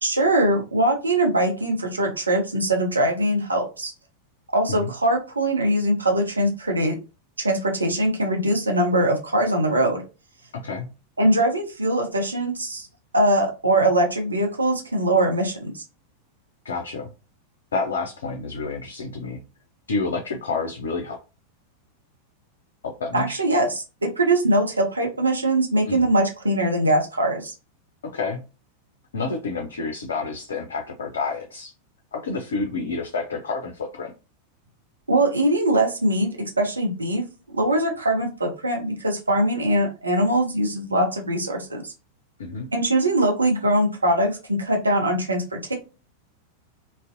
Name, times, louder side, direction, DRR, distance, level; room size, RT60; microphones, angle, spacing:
voice 1, 0.0-3.9 4.5-7.0 7.4-10.0 11.2-12.9 13.1-15.8 23.1-27.5 35.1-41.9 42.7-45.7, right 1 dB, 80° right, 2 dB, 0.6 m, -22 dB
voice 2, 10.5-10.9 16.6-17.1 17.7-19.4 19.9-21.2 22.8-23.4 25.9-26.1 28.0-28.4 29.1-31.7 32.1-34.1 42.4-42.7, left 4 dB, 65° left, 3 dB, 0.4 m, -29 dB
2.5 x 2.1 x 2.5 m, 0.30 s
figure-of-eight pair, 90°, 0 cm